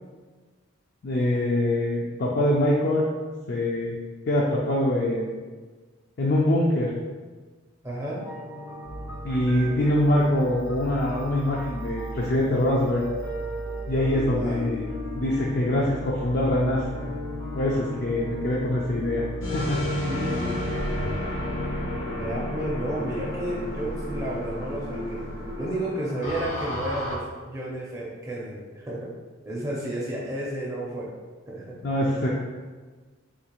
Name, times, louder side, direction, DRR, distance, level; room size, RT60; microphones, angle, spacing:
voice 1, 1.0-3.1 3.5-4.0 4.3-5.3 6.2-6.9 9.2-13.0 13.9-14.8 15.2-16.8 17.6-19.8 31.8-32.3, left 1 dB, 45° left, -4 dB, 0.3 m, -24 dB
voice 2, 7.8-8.2 14.3-14.6 20.0-21.2 22.1-25.2 25.5-29.1 29.5-31.1 31.5-31.7, right 1 dB, 15° right, -5 dB, 0.4 m, -32 dB
sound 1, 8.2-27.1, left 2 dB, 90° left, 1.0 m, -40 dB
sound 2, 8.8-22.0, right 2 dB, 80° right, 0.5 m, -38 dB
sound 3, 19.4-27.1, left 1 dB, 65° left, 1.0 m, -31 dB
3.7 x 2.3 x 2.9 m, 1.4 s
head